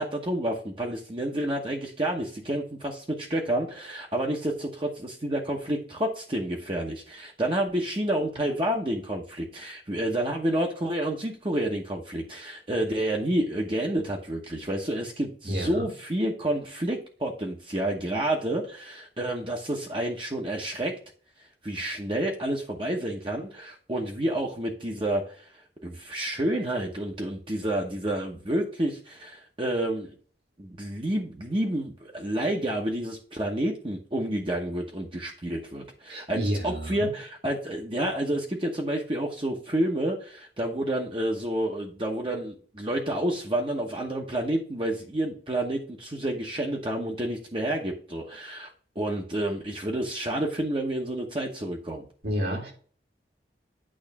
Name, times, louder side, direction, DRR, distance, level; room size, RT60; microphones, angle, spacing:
voice 1, 0.0-20.9 21.6-25.5 25.8-30.1 30.6-36.4 36.6-48.7 49.0-52.1, right 1 dB, 30° right, 0 dB, 0.9 m, -29 dB
voice 2, 15.5-15.9 36.1-37.1 52.2-52.7, equal, 65° right, 1 dB, 2.2 m, -30 dB
8.8 x 3.2 x 5.9 m, 0.43 s
head